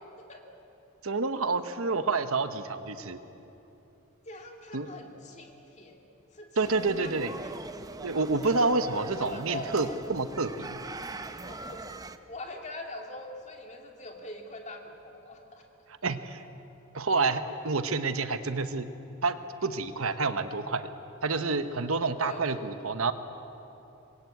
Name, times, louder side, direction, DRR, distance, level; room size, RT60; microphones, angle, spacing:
voice 1, 1.0-3.2 4.7-4.9 6.6-7.3 8.0-10.8 16.0-16.4 16.9-18.9 19.2-20.9 21.2-23.1, right 3 dB, 70° right, 10 dB, 1.1 m, -28 dB
voice 2, 4.3-6.0 6.3-7.6 8.4-10.0 10.9-11.8 12.3-15.6 22.2-22.6, left 2 dB, 30° left, 2 dB, 2.6 m, -43 dB
sound 1, 6.6-12.2, right 2 dB, 15° right, 0.7 m, -42 dB
26.0 x 21.5 x 8.4 m, 3.0 s
head